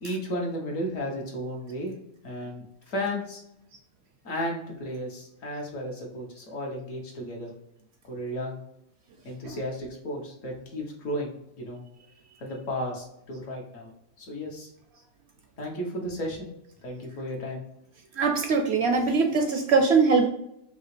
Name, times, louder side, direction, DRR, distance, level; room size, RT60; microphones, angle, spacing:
voice 1, 0.0-1.9 2.2-3.4 4.2-7.5 8.1-8.6 9.2-11.8 12.4-13.9 14.2-14.7 15.6-16.5 16.8-17.6, equal, 70° left, -1 dB, 1.5 m, -34 dB
voice 2, 18.2-20.3, right 4 dB, 65° right, 5 dB, 0.7 m, -22 dB
4.7 x 2.8 x 3.2 m, 0.80 s
omnidirectional pair, 1.4 m